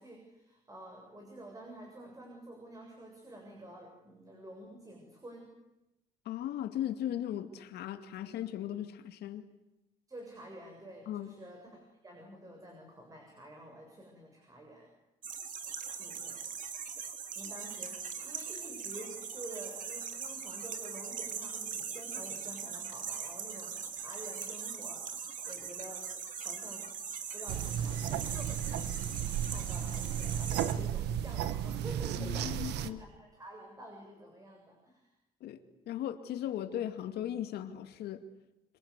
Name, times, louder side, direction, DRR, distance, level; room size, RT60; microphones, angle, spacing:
voice 1, 0.0-5.5 10.1-14.9 16.0-16.4 17.4-26.1 26.4-26.9 27.3-29.1 29.4-35.1, right 1 dB, 20° right, 2 dB, 7.7 m, -49 dB
voice 2, 6.3-9.5 11.1-11.3 17.0-17.1 32.2-33.0 35.4-35.6 35.9-38.2, left 11 dB, 75° left, 7 dB, 2.4 m, -37 dB
sound 1, 15.2-30.7, right 6 dB, 50° right, 3.1 m, -41 dB
sound 2, 27.5-32.9, right 10 dB, 80° right, 1.4 m, -34 dB
27.0 x 26.0 x 8.4 m, 0.94 s
cardioid pair, 110°, 17 cm